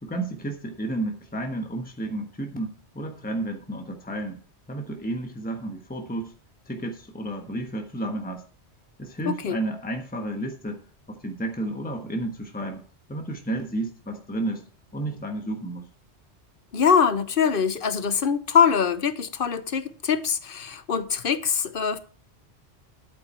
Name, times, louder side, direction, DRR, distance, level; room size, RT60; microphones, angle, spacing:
voice 1, 0.0-4.4 4.7-6.3 6.7-8.4 9.0-10.8 11.1-12.8 13.1-14.7 14.9-15.9, right 1 dB, 10° left, 1.3 m, -32 dB
voice 2, 9.2-9.6 16.7-22.0, left 7 dB, 55° left, 1.0 m, -23 dB
11.0 x 8.6 x 4.4 m
omnidirectional pair, 1.1 m